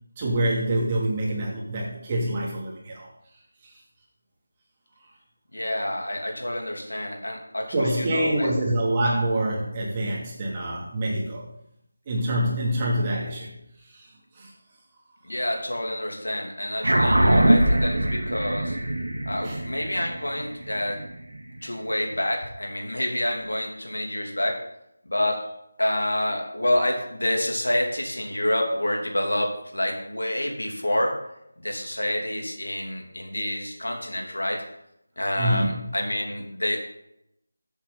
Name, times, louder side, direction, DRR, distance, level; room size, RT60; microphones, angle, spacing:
voice 1, 0.2-3.1 3.6-3.8 7.7-11.5 12.1-13.5 13.9-14.1 14.3-14.5 17.9-18.1 19.4-19.6 35.4-35.9, right 1 dB, 20° right, -4 dB, 2.9 m, -26 dB
voice 2, 5.5-8.5 15.2-18.8 19.3-21.0 21.6-24.6 25.0-25.4 25.8-31.2 31.6-34.6 35.2-36.8, left 1 dB, 85° left, 1 dB, 3.1 m, -28 dB
sound 1, 16.8-21.6, right 1 dB, 80° right, 2.3 m, -22 dB
14.0 x 8.1 x 4.1 m, 0.80 s
figure-of-eight pair, 165°, 0 cm